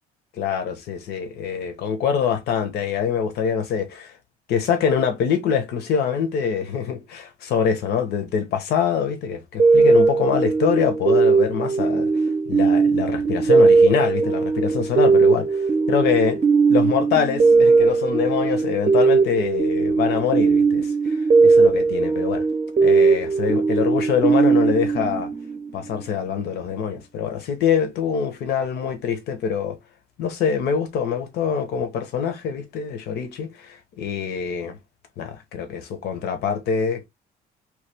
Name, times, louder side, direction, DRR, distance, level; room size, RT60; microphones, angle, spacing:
voice 1, 0.3-4.2 4.5-16.4 16.7-22.5 22.8-25.3 25.7-29.8 30.2-34.8 35.2-37.0, left 7 dB, 75° left, 0.9 m, -24 dB
sound 1, 9.6-25.9, right 4 dB, 30° right, 0.6 m, -18 dB
3.1 x 2.3 x 3.4 m
cardioid pair, 110°, 17 cm